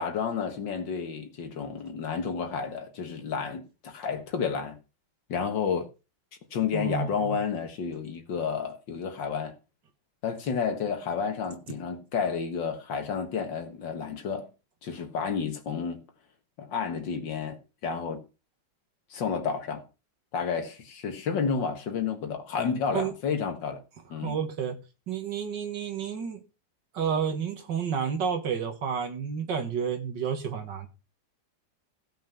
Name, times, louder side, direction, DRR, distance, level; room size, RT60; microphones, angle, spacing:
voice 1, 0.0-4.8 5.3-5.9 6.5-9.5 10.2-14.5 14.8-16.1 16.6-18.2 19.1-19.8 20.3-23.8 24.1-24.4, left 6 dB, 75° left, 2.2 m, -31 dB
voice 2, 6.7-7.4 22.9-23.1 24.2-24.8 25.1-26.4 26.9-30.9, right 7 dB, 70° right, 2.3 m, -30 dB
15.5 x 6.0 x 5.5 m
omnidirectional pair, 2.0 m